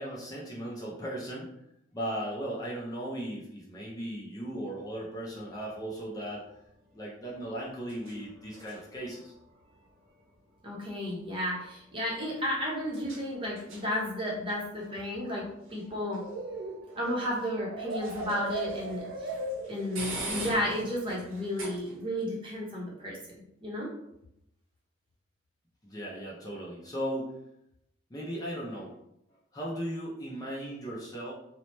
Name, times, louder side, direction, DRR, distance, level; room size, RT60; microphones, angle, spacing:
voice 1, 0.0-1.5 1.9-6.4 6.9-9.3 25.8-27.3 28.1-29.0 29.5-31.3, right 1 dB, 20° left, -4 dB, 0.4 m, -37 dB
sound 1, 4.8-22.2, right 2 dB, 85° right, 0.8 m, -47 dB
voice 2, 10.6-16.2 16.9-19.3 19.7-23.9, left 1 dB, 25° right, -4 dB, 0.7 m, -33 dB
sound 2, 16.2-20.3, right 2 dB, 65° right, 0.3 m, -37 dB
2.9 x 2.0 x 3.0 m, 0.79 s
head